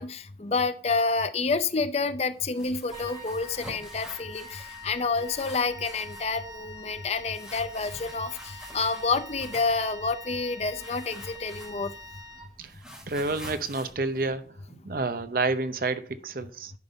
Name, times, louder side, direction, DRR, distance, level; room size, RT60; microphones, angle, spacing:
voice 1, 0.0-11.9, left 4 dB, 35° left, 0.5 m, -29 dB
sound 1, 2.4-4.9 5.1-6.3 7.3-9.8 10.7-12.1 12.3-15.0, equal, 5° right, 3.3 m, -47 dB
Wind instrument woodwind instrument, 2.9-13.0, left 1 dB, 20° right, 1.0 m, -45 dB
voice 2, 13.1-14.6 14.8-16.7, right 3 dB, 55° right, 0.7 m, -29 dB
11.0 x 5.4 x 4.0 m
head